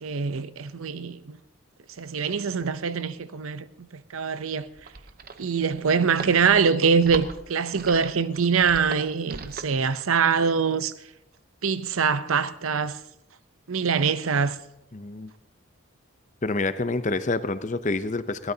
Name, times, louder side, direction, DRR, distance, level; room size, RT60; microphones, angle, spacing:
voice 1, 0.0-1.4 2.0-4.7 5.4-10.9 11.6-13.0 13.7-14.6, right 5 dB, 75° right, 0.7 m, -24 dB
sound 1, 4.7-9.8, right 4 dB, 45° right, 0.8 m, -39 dB
voice 2, 14.9-15.3 16.4-18.5, left 3 dB, 35° left, 0.7 m, -27 dB
21.0 x 17.5 x 2.8 m
head